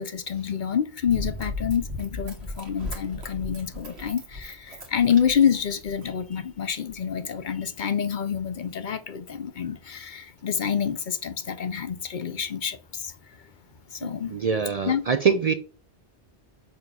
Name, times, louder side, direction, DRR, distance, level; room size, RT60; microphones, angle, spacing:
voice 1, 0.0-13.1 13.9-14.3 14.9-15.1, left 8 dB, 55° left, 0.7 m, -27 dB
Run, 1.1-6.3 6.9-7.0, left 1 dB, 85° right, 1.8 m, -36 dB
voice 2, 14.0-15.5, right 6 dB, 50° right, 0.5 m, -24 dB
7.1 x 3.0 x 5.3 m
omnidirectional pair, 1.1 m